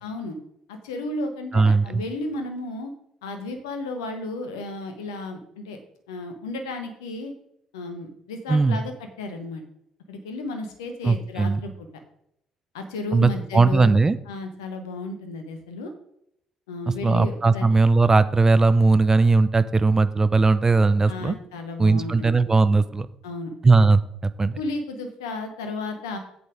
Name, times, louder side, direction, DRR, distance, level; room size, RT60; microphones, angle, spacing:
voice 1, 0.0-0.4 0.7-2.9 3.2-5.8 6.1-7.3 7.7-8.9 9.2-9.6 10.1-11.9 12.7-14.0 14.3-15.9 16.7-17.7 21.1-22.3 23.2-23.5 24.6-26.2, left 2 dB, 75° left, 6 dB, 1.2 m, -33 dB
voice 2, 1.5-2.0 8.5-8.8 11.0-11.6 13.1-14.2 17.0-21.4 21.8-23.1 23.6-24.6, right 3 dB, 20° right, 14 dB, 0.6 m, -19 dB
8.1 x 7.1 x 5.0 m, 0.75 s
figure-of-eight pair, 50°, 2 cm